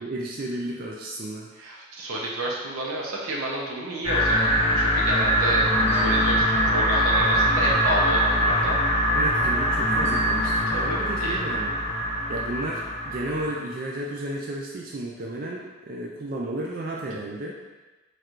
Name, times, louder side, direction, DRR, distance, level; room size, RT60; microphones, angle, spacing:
voice 1, 0.0-1.5 9.1-11.7 12.3-17.6, right 1 dB, 40° right, -2 dB, 0.3 m, -33 dB
voice 2, 1.6-8.8 10.7-11.4, right 2 dB, 85° right, -3 dB, 0.8 m, -30 dB
sound 1, 4.0-13.5, equal, 30° left, 0.5 m, -23 dB
4.4 x 3.2 x 2.5 m, 1.2 s
head